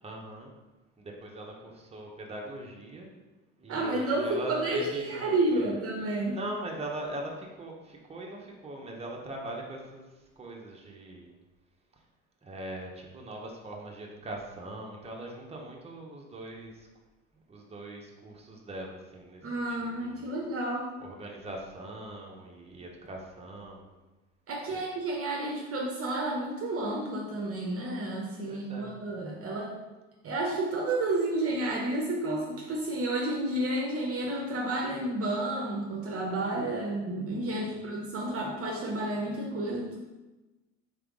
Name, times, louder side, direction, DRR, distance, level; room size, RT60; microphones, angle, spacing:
voice 1, 0.0-0.5 1.0-3.1 3.6-5.8 6.3-11.3 12.4-16.9 17.5-20.4 21.0-23.9 24.7-24.8 28.5-28.9 37.5-38.0, right 1 dB, 15° right, -1 dB, 1.0 m, -41 dB
voice 2, 3.7-6.4 19.4-20.9 24.5-29.8 30.2-40.0, right 2 dB, 35° right, -1 dB, 0.9 m, -31 dB
4.0 x 3.4 x 3.7 m, 1.1 s
hypercardioid pair, 65°, 38 cm